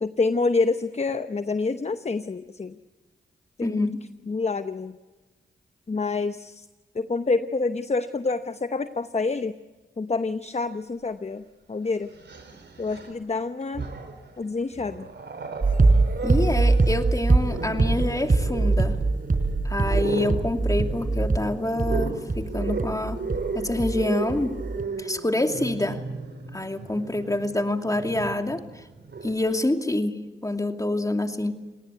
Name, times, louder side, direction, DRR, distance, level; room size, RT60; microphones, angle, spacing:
voice 1, 0.0-2.7 3.6-3.9 4.3-5.0 5.9-6.7 6.9-9.5 10.0-12.1 12.8-13.9 14.4-15.1, left 3 dB, 35° left, 11 dB, 0.9 m, -27 dB
voice 2, 3.6-4.0 16.2-19.0 19.6-23.2 23.5-24.5 25.0-26.0 26.5-28.8 29.2-31.5, left 1 dB, 15° left, 5 dB, 2.5 m, -27 dB
Growling, 11.1-11.2 12.1-13.2 13.6-14.3 14.7-29.3, right 4 dB, 65° right, 4.0 m, -35 dB
sound 1, 15.6-24.0 24.3-24.8, right 3 dB, 45° right, 4.3 m, -23 dB
28.5 x 18.5 x 8.3 m, 1.2 s
cardioid pair, 45°, 19 cm